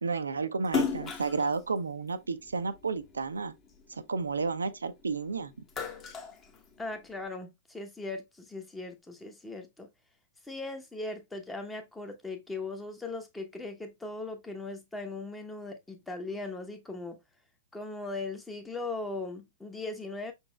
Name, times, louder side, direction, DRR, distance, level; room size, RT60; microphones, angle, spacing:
voice 1, 0.0-3.5 3.9-5.5, right 4 dB, 70° right, 0.5 m, -32 dB
Splash splatter, 0.6-3.2 3.7-5.1 5.5-7.2, left 5 dB, 25° left, 1.1 m, -35 dB
voice 2, 6.8-9.9 10.4-17.2 17.7-20.3, left 2 dB, 10° left, 0.9 m, -39 dB
5.8 x 4.0 x 2.2 m
figure-of-eight pair, 105°, 0 cm